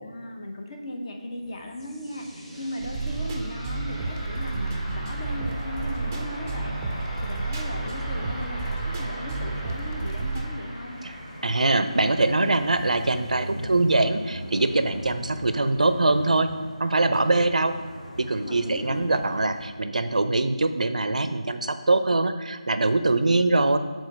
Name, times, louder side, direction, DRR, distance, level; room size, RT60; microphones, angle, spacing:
voice 1, 0.0-11.0 18.4-19.2, left 1 dB, 40° left, 3 dB, 0.7 m, -37 dB
sound 1, 1.4-14.1, equal, ahead, 1.2 m, -41 dB
sound 2, 2.8-10.5, right 3 dB, 20° right, 0.4 m, -31 dB
sound 3, 7.7-19.7, equal, 80° left, 1.0 m, -41 dB
voice 2, 11.4-16.5 16.8-17.8 18.2-23.8, right 2 dB, 80° right, 10 dB, 0.4 m, -23 dB
4.9 x 3.8 x 5.2 m, 1.5 s
figure-of-eight pair, 165°, 4 cm